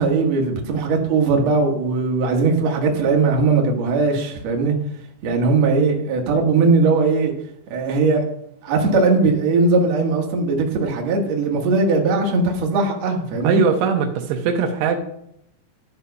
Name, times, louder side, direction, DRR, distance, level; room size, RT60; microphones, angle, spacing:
voice 1, 0.0-4.7 5.2-7.3 7.7-8.2 8.6-13.6, right 3 dB, 55° right, 1 dB, 2.1 m, -19 dB
voice 2, 13.4-15.0, right 6 dB, 85° right, 5 dB, 3.1 m, -20 dB
11.5 x 5.2 x 5.8 m, 0.75 s
omnidirectional pair, 4.7 m